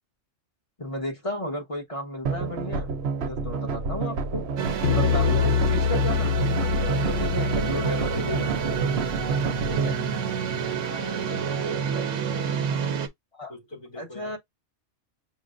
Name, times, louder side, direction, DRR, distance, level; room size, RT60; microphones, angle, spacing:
voice 1, 0.8-2.9 3.2-4.4 4.9-8.5 9.7-10.0 13.3-13.5 14.0-14.4, left 1 dB, 30° left, 1.2 m, -34 dB
sound 1, 2.2-9.9, right 5 dB, 65° right, 0.9 m, -29 dB
sound 2, 4.6-13.1, right 7 dB, 90° right, 1.0 m, -29 dB
sound 3, 4.8-10.2, left 10 dB, 60° left, 0.7 m, -27 dB
voice 2, 10.9-12.6 13.5-14.4, left 3 dB, 45° left, 2.6 m, -41 dB
6.0 x 2.2 x 2.5 m
omnidirectional pair, 1.2 m